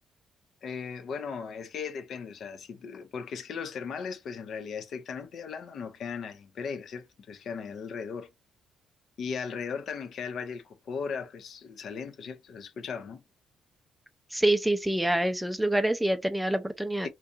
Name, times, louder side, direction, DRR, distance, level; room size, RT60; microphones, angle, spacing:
voice 1, 0.6-8.3 9.2-13.2 17.0-17.1, left 6 dB, 65° left, 0.5 m, -37 dB
voice 2, 14.3-17.1, right 1 dB, 5° right, 0.4 m, -26 dB
2.6 x 2.3 x 2.4 m
cardioid pair, 90°, 0 cm